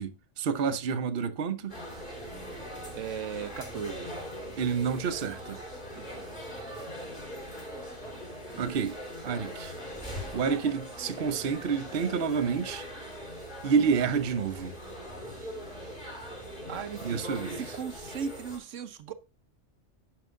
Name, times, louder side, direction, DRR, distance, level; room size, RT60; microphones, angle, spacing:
voice 1, 0.0-1.8 4.6-5.6 8.6-9.0 9.2-9.7 10.3-12.9 13.6-14.7 17.0-17.6, right 6 dB, 55° right, 1.0 m, -29 dB
sound 1, 1.7-18.6, equal, 40° left, 5.1 m, -41 dB
voice 2, 2.9-4.1 6.0-6.3 8.5-8.6 16.7-17.2 17.5-19.1, right 7 dB, 90° right, 1.2 m, -37 dB
10.5 x 5.9 x 3.7 m
omnidirectional pair, 1.2 m